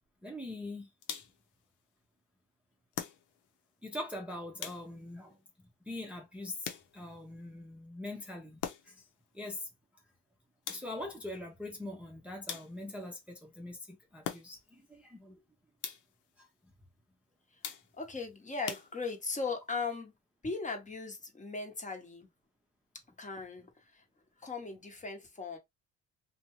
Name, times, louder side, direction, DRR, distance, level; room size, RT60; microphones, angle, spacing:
voice 1, 0.2-0.9 3.8-5.4 5.8-9.1 9.3-9.7 10.7-15.4 16.4-16.5, left 1 dB, 5° right, 0.7 m, -43 dB
sound 1, 1.0-1.5 2.9-3.6 4.6-5.2 6.6-7.2 8.6-9.1 10.7-11.2 12.5-13.0 14.2-14.8 15.8-16.3 17.6-18.1 18.7-19.4, left 8 dB, 90° left, 0.7 m, -43 dB
voice 2, 18.0-20.1 20.4-22.3 23.2-24.0 24.4-25.6, left 4 dB, 25° left, 1.0 m, -38 dB
2.6 x 2.2 x 3.0 m
cardioid pair, 90°, 30 cm